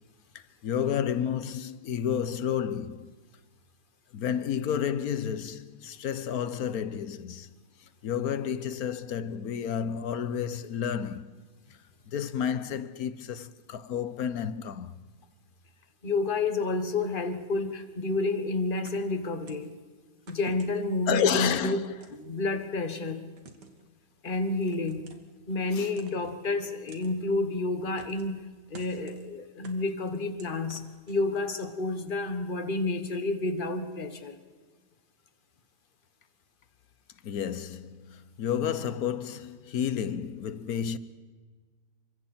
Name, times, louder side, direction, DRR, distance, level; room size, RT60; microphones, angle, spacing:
voice 1, 0.6-3.1 4.1-7.5 8.0-11.3 12.1-14.9 21.1-21.9 25.7-25.9 37.2-41.0, left 8 dB, 65° left, 1.3 m, -31 dB
voice 2, 16.0-19.7 20.3-21.8 22.1-23.3 24.2-25.0 25.5-28.4 28.7-34.4, left 2 dB, 30° left, 1.6 m, -30 dB
sound 1, 18.9-19.7 20.3-21.0 21.7-22.6 23.4-23.8 24.7-25.3 25.9-26.4 26.9-27.1 28.0-28.4 28.7-29.3 29.6-31.5, right 3 dB, 90° right, 2.6 m, -50 dB
29.0 x 25.0 x 4.4 m
omnidirectional pair, 1.8 m